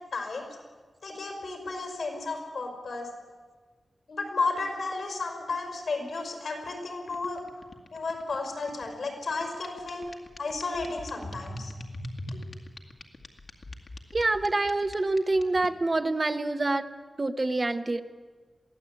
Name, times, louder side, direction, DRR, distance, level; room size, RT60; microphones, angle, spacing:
voice 1, 0.1-0.5 1.0-3.1 4.1-7.4 7.9-10.0 10.4-11.7 12.3-12.4, left 3 dB, 75° left, 4 dB, 5.3 m, -33 dB
sound 1, 7.1-15.7, left 1 dB, 55° left, 2.1 m, -41 dB
voice 2, 14.1-16.8 17.2-18.0, right 2 dB, 35° right, 8 dB, 1.1 m, -26 dB
23.0 x 16.0 x 8.5 m, 1.4 s
wide cardioid pair, 90°, 0 cm